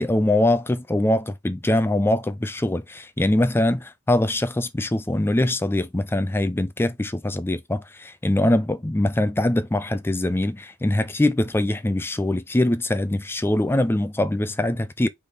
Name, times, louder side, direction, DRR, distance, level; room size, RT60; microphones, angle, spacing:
voice 1, 0.0-15.1, left 1 dB, 10° left, 0.4 m, -23 dB
4.1 x 3.5 x 3.4 m
head